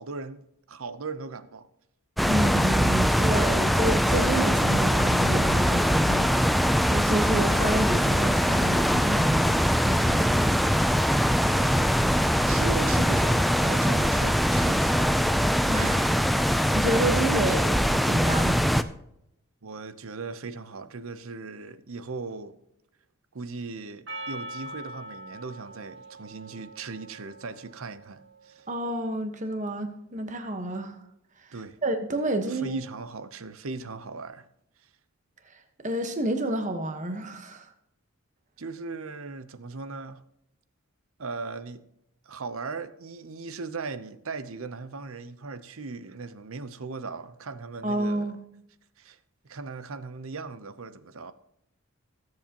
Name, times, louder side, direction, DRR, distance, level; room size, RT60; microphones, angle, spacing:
voice 1, 0.0-1.7 11.5-11.9 12.5-15.3 19.6-22.6 23.3-28.7 31.5-31.8 32.5-34.5 34.8-34.9 38.6-40.2 41.2-41.8 42.2-48.3 49.0-49.2 49.4-51.3, right 4 dB, 70° right, 0.8 m, -38 dB
sound 1, 2.2-18.8, equal, ahead, 0.4 m, -22 dB
voice 2, 2.2-6.4 6.9-10.5 15.7-18.6 28.7-31.0 31.8-32.8 35.8-37.7 47.8-48.4, right 1 dB, 35° right, 1.3 m, -29 dB
Percussion, 24.1-28.6, right 1 dB, 55° right, 1.6 m, -42 dB
21.0 x 7.8 x 3.0 m
head